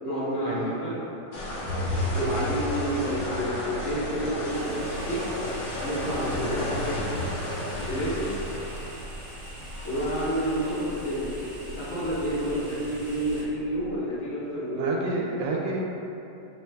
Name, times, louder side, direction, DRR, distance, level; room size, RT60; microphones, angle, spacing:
voice 1, 0.0-0.9 2.1-5.2 5.8-7.0 7.8-8.3 9.8-11.3 11.6-14.9, equal, 50° left, -12 dB, 1.3 m, -29 dB
sound 1, 1.3-13.9, left 1 dB, 85° left, 1.6 m, -33 dB
sound 2, 4.5-13.4, equal, 50° right, 0.6 m, -43 dB
voice 2, 14.8-15.8, right 2 dB, 85° right, -2 dB, 1.3 m, -29 dB
4.2 x 3.2 x 2.2 m, 2.8 s
omnidirectional pair, 1.9 m